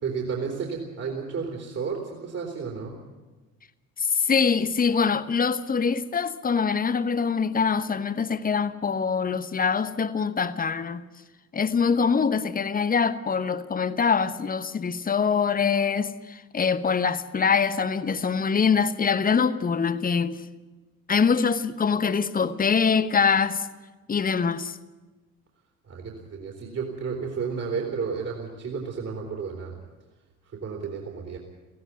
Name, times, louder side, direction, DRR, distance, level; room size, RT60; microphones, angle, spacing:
voice 1, 0.0-3.0 25.9-29.8 30.5-31.4, right 5 dB, 35° right, 3.4 m, -32 dB
voice 2, 4.0-11.0 11.5-20.4 21.1-23.7 24.1-24.8, left 6 dB, 20° left, 1.1 m, -24 dB
17.5 x 16.5 x 9.5 m
figure-of-eight pair, 55°, 43 cm